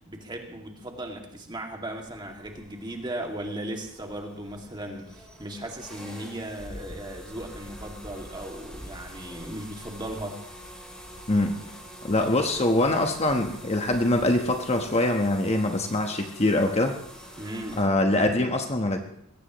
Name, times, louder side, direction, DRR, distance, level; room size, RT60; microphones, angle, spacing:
voice 1, 0.1-10.4 17.4-17.8, right 1 dB, 20° right, 2 dB, 2.3 m, -37 dB
sound 1, 1.9-17.8, equal, 5° left, 4.0 m, -45 dB
voice 2, 12.0-16.9 17.8-19.0, left 1 dB, 30° left, 4 dB, 1.2 m, -23 dB
22.0 x 17.0 x 3.1 m, 0.78 s
head